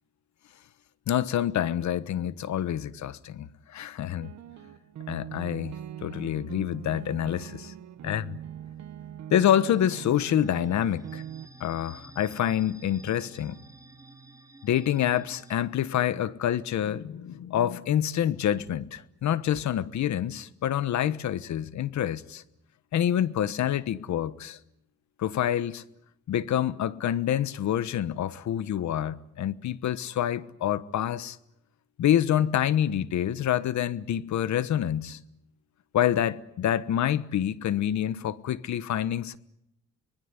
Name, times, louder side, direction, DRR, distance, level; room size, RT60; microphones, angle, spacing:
voice 1, 1.1-4.3 5.1-5.7 6.0-7.7 8.0-8.4 9.3-11.2 11.6-13.6 14.6-22.4 22.9-24.6 25.2-25.8 26.3-31.4 32.0-35.2 35.9-39.4, left 10 dB, 65° left, 1.2 m, -27 dB
sound 1, 4.2-11.5, right 10 dB, 65° right, 1.2 m, -42 dB
sound 2, 9.7-15.6, right 3 dB, 10° right, 2.8 m, -50 dB
25.5 x 20.5 x 9.7 m
cardioid pair, 90°, 30 cm